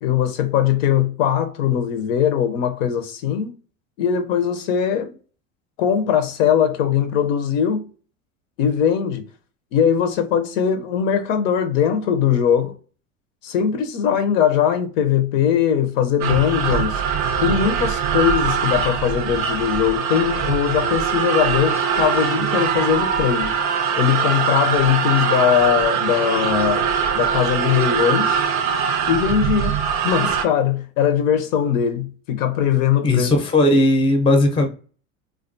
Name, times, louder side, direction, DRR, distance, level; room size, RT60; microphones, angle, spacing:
voice 1, 0.0-3.5 4.0-5.2 5.8-7.9 8.6-9.2 9.7-12.7 13.4-17.0 17.4-23.6 24.0-28.4 29.1-33.3, left 9 dB, 70° left, 0.6 m, -20 dB
sound 1, 16.2-30.5, right 7 dB, 40° right, 0.4 m, -22 dB
voice 2, 33.0-34.7, left 1 dB, 15° left, 0.5 m, -17 dB
2.3 x 2.3 x 2.5 m
hypercardioid pair, 105°, 40 cm